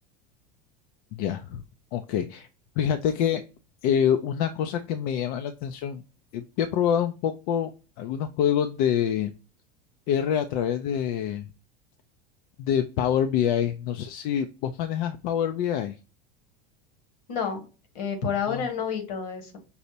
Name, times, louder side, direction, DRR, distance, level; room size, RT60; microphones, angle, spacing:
voice 1, 1.1-1.6 1.9-2.5 2.8-3.4 3.8-6.0 6.3-7.7 8.0-9.3 10.1-11.5 12.6-16.0 18.5-18.7, left 9 dB, 65° left, 7 dB, 0.4 m, -26 dB
voice 2, 17.3-17.6 17.9-19.6, left 6 dB, 80° left, 6 dB, 1.2 m, -29 dB
5.3 x 2.0 x 2.7 m, 0.32 s
supercardioid pair, 120°, 21 cm